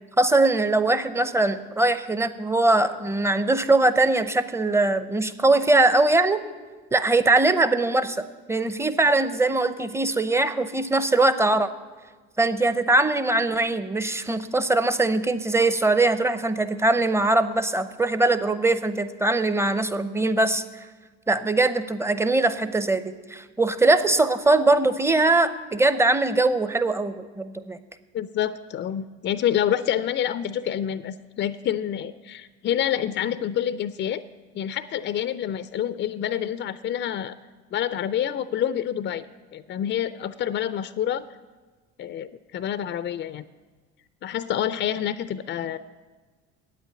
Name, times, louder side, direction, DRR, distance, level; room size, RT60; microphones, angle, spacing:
voice 1, 0.2-6.4 6.9-8.2 8.5-11.7 12.4-20.9 21.3-27.8, right 2 dB, 10° right, 12 dB, 0.7 m, -21 dB
voice 2, 28.1-34.2 34.5-37.4 37.7-39.2 39.5-41.3 42.0-43.4 44.2-45.8, left 10 dB, 40° left, 14 dB, 0.5 m, -27 dB
9.0 x 8.3 x 8.9 m, 1.4 s
hypercardioid pair, 65°, 30 cm